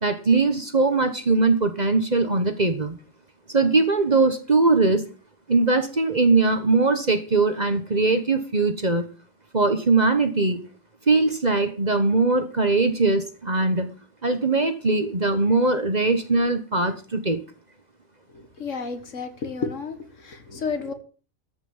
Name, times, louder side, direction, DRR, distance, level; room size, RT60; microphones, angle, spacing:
voice 1, 0.0-3.0 3.5-5.1 5.5-9.1 9.5-10.6 11.1-13.9 14.2-17.4, right 3 dB, 30° right, 9 dB, 1.2 m, -21 dB
voice 2, 18.3-20.9, left 5 dB, 60° left, 9 dB, 1.9 m, -31 dB
13.5 x 6.1 x 7.2 m, 0.37 s
omnidirectional pair, 1.5 m